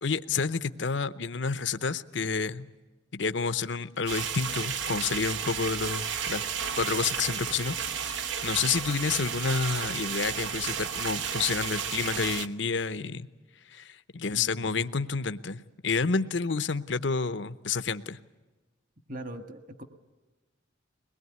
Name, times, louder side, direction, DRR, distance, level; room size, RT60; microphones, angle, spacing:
voice 1, 0.0-2.7 3.1-6.4 6.7-13.3 13.7-18.2, left 5 dB, 65° left, 13 dB, 0.8 m, -29 dB
sound 1, 4.1-12.5, right 7 dB, 70° right, 1.0 m, -33 dB
voice 2, 14.3-14.8 19.1-19.8, right 1 dB, 45° right, 8 dB, 1.8 m, -41 dB
22.5 x 20.5 x 9.5 m, 1.2 s
head